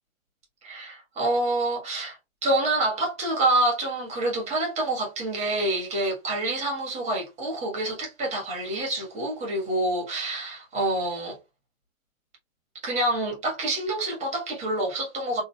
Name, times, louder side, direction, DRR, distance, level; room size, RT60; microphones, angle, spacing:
voice 1, 0.6-2.2 2.4-11.4 12.8-15.4, right 1 dB, 15° right, 1.4 m, -27 dB
3.8 x 2.6 x 2.2 m
hypercardioid pair, 120°, 40 cm